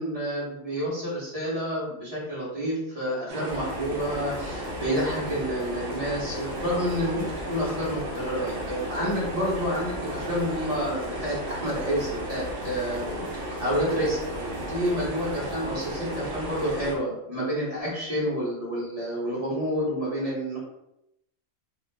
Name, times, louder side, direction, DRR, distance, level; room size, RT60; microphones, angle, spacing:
voice 1, 0.0-13.1 13.3-20.6, equal, 30° right, -7 dB, 0.9 m, -29 dB
sound 1, 3.3-16.9, right 1 dB, 65° right, 0.9 m, -34 dB
sound 2, 3.5-17.0, left 2 dB, 60° left, 0.8 m, -43 dB
2.4 x 2.2 x 3.2 m, 0.84 s
omnidirectional pair, 1.4 m